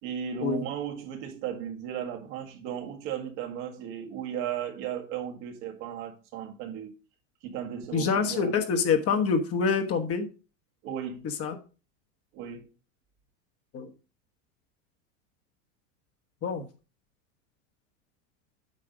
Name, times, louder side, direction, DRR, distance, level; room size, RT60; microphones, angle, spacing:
voice 1, 0.0-6.9 7.4-8.5 10.8-11.2 12.3-12.7, right 9 dB, 60° right, 1.7 m, -35 dB
voice 2, 7.9-10.3 11.4-11.6 13.7-13.9 16.4-16.6, left 5 dB, 35° left, 1.3 m, -26 dB
8.6 x 4.8 x 5.0 m
supercardioid pair, 115°, 39 cm